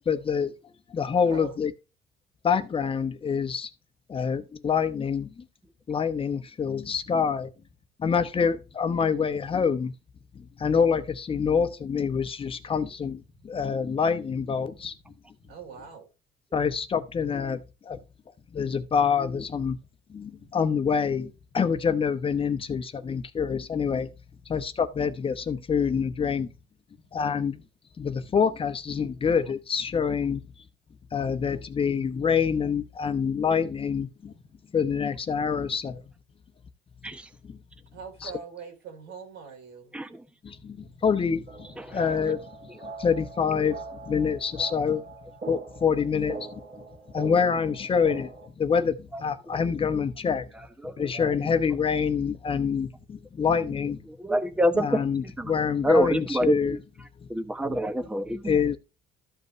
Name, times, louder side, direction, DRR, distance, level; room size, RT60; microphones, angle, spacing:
voice 1, 0.1-0.5 0.9-1.7 2.4-3.7 4.1-5.4 5.9-7.5 8.0-9.9 10.3-14.9 16.5-18.0 18.5-19.8 20.1-24.1 24.5-26.5 27.1-27.6 28.0-30.4 31.1-34.3 34.7-36.0 37.4-37.6 38.2-38.3 40.4-42.4 43.0-45.0 45.5-46.6 47.1-50.5 50.8-54.0 54.7-56.8 57.6-57.8 58.4-58.8, left 6 dB, 30° left, 1.0 m, -26 dB
voice 2, 1.3-1.6 15.5-16.1 37.9-40.0, right 6 dB, 85° right, 3.6 m, -42 dB
sound 1, 41.5-48.5, right 3 dB, 40° right, 2.2 m, -42 dB
voice 3, 41.8-42.2 50.8-51.3 54.2-55.0 55.4-55.5 55.8-56.8 57.3-58.6, right 1 dB, 5° right, 0.9 m, -27 dB
13.5 x 5.3 x 3.2 m
cardioid pair, 110°, 17 cm